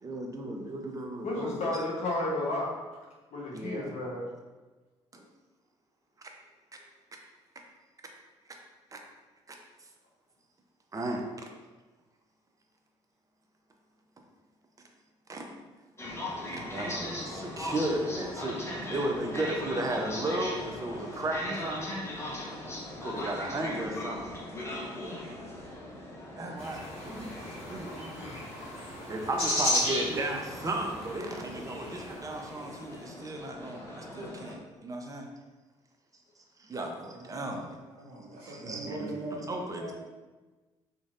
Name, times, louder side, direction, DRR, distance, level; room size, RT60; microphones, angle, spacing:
voice 1, 0.0-1.7 3.5-3.9 5.1-5.2 8.9-9.0 9.5-9.6 10.9-11.5 15.3-15.5 16.5-21.9 22.2-22.4 23.0-24.4 26.4-28.2 29.1-35.3 36.6-37.8 38.4-39.1 39.5-39.9, right 1 dB, 25° right, 2 dB, 0.5 m, -35 dB
voice 2, 1.2-2.7 3.3-4.2 28.1-28.4, left 2 dB, 55° left, -4 dB, 0.9 m, -32 dB
sound 1, 16.0-34.6, left 1 dB, 20° left, 0.9 m, -40 dB
sound 2, 26.6-32.8, left 1 dB, 70° left, 1.3 m, -34 dB
voice 3, 37.1-37.6 37.9-39.9, right 2 dB, 65° right, -8 dB, 0.6 m, -41 dB
3.0 x 2.5 x 2.4 m, 1.2 s
hypercardioid pair, 45°, 14 cm